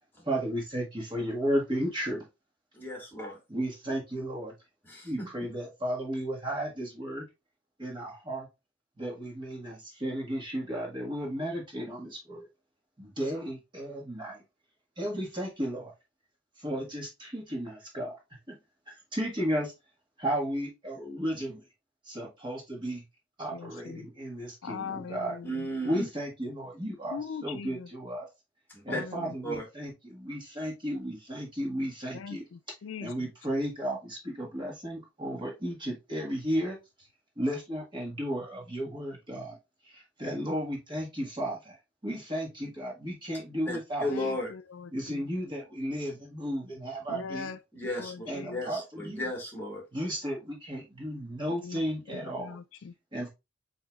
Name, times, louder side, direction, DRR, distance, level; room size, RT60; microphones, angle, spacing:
voice 1, 0.2-2.2 3.5-4.5 5.0-7.3 7.8-8.5 9.0-12.5 13.0-14.4 15.0-15.9 16.6-18.2 18.5-18.6 18.9-19.7 20.2-21.6 22.0-23.0 23.4-25.4 25.8-28.3 28.8-32.4 33.0-36.8 37.4-39.6 39.8-41.8 42.0-44.1 44.9-47.5 48.3-49.3 49.9-52.5 53.1-53.3, equal, 25° right, 1.6 m, -34 dB
voice 2, 2.7-3.4 4.8-5.3 25.4-26.0 28.7-29.0 29.4-29.6 43.7-44.5 47.7-49.8, left 1 dB, 10° left, 1.8 m, -35 dB
voice 3, 23.5-24.1 24.6-25.3 27.1-27.9 28.9-29.3 32.1-33.1 44.2-45.2 47.1-47.6 48.0-48.6 51.6-51.8 52.1-52.9, left 6 dB, 75° left, 0.4 m, -41 dB
7.6 x 2.9 x 2.4 m
head